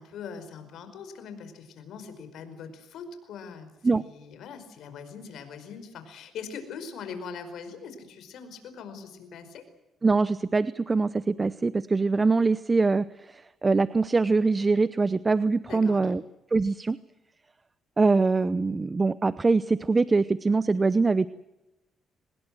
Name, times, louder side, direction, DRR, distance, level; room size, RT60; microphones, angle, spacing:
voice 1, 0.0-9.6 15.7-16.2, left 6 dB, 75° left, 9 dB, 5.0 m, -42 dB
voice 2, 10.0-16.2 16.5-17.0 18.0-21.3, right 3 dB, 25° right, 16 dB, 0.7 m, -23 dB
25.0 x 20.0 x 7.7 m, 0.97 s
cardioid pair, 90°, 0 cm